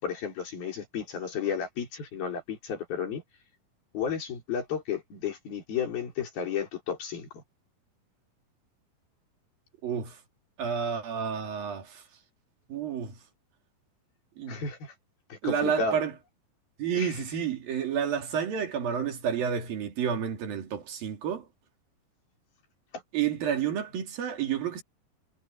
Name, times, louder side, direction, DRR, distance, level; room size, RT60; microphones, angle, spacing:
voice 1, 0.0-3.2 3.9-7.4 14.5-14.9 15.3-16.0 17.0-17.1, left 6 dB, 90° left, 6.7 m, -33 dB
voice 2, 9.8-10.2 10.6-12.0 12.7-13.2 14.4-14.6 15.4-16.1 16.8-21.5 23.1-24.8, right 8 dB, 75° right, 4.6 m, -30 dB
omnidirectional pair, 4.2 m